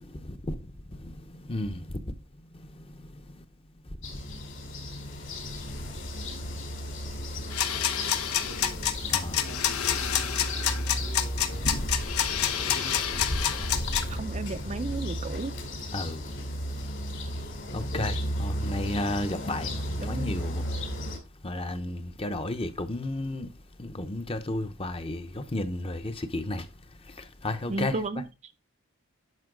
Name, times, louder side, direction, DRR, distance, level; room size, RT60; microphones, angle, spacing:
voice 1, 0.0-2.1 2.5-3.4 4.8-4.9 8.9-9.4 15.9-16.2 17.7-20.6 21.4-23.5 23.8-26.7 27.1-28.0, left 1 dB, 25° left, 0.8 m, -33 dB
sound 1, 4.0-21.2, equal, 60° left, 2.6 m, -34 dB
sound 2, 7.5-14.2, left 9 dB, 90° left, 1.0 m, -28 dB
voice 2, 14.1-15.5 20.0-20.3 27.7-28.2, right 3 dB, 30° right, 0.5 m, -33 dB
11.0 x 5.7 x 3.8 m
head